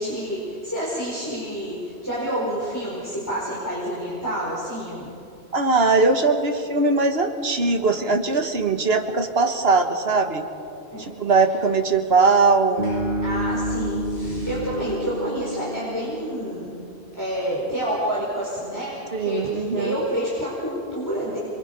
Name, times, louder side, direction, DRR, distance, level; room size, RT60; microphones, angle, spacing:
voice 1, 0.0-5.1 10.9-11.1 13.2-16.7 17.2-21.4, equal, 15° left, -7 dB, 5.0 m, -28 dB
voice 2, 5.5-10.5 11.0-12.9 19.1-20.0, right 3 dB, 65° right, 5 dB, 1.7 m, -20 dB
sound 1, 12.8-15.1, right 1 dB, 85° left, 6.4 m, -37 dB
Bass guitar, 12.8-16.9, equal, 40° left, 2.3 m, -29 dB
26.5 x 23.0 x 5.4 m, 2.6 s
omnidirectional pair, 1.1 m